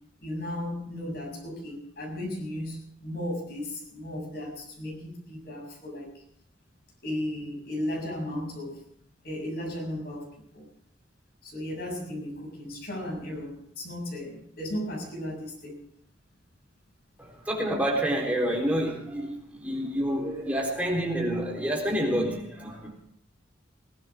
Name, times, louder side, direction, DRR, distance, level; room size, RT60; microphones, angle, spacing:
voice 1, 0.2-6.2 7.0-8.8 9.2-10.3 10.5-10.7 11.4-15.8, left 1 dB, 55° left, 1 dB, 6.8 m, -35 dB
voice 2, 17.2-23.0, equal, 10° right, -2 dB, 3.8 m, -28 dB
21.5 x 16.0 x 3.6 m, 0.67 s
head